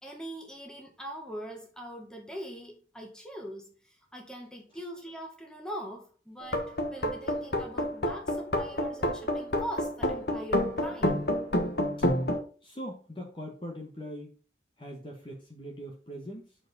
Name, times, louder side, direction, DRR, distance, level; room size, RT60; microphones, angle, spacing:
voice 1, 0.0-11.3, equal, 5° left, 1.5 m, -42 dB
sound 1, 6.4-12.4, left 1 dB, 65° left, 1.3 m, -28 dB
voice 2, 12.6-14.3 14.8-16.5, equal, 30° left, 1.2 m, -41 dB
5.9 x 4.8 x 5.3 m
head